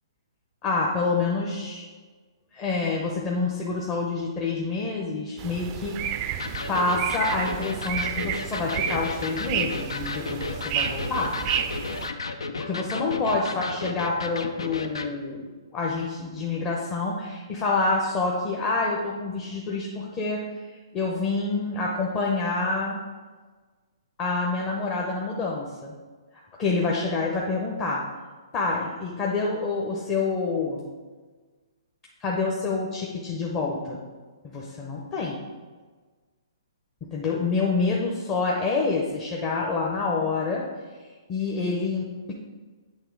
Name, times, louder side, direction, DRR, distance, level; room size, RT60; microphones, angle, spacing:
voice 1, 0.6-1.8 2.5-6.4 6.7-11.3 12.6-20.4 20.9-23.0 24.2-25.9 26.6-28.0 28.5-30.9 32.2-34.0 34.4-35.4 37.0-40.6 41.3-42.3, left 3 dB, 25° left, -3 dB, 0.7 m, -27 dB
sound 1, 5.4-12.1, right 9 dB, 30° right, 0.4 m, -31 dB
Electric guitar, 6.4-15.1, left 3 dB, 85° left, 0.5 m, -33 dB
8.4 x 3.2 x 4.6 m, 1.4 s
hypercardioid pair, 135°, 3 cm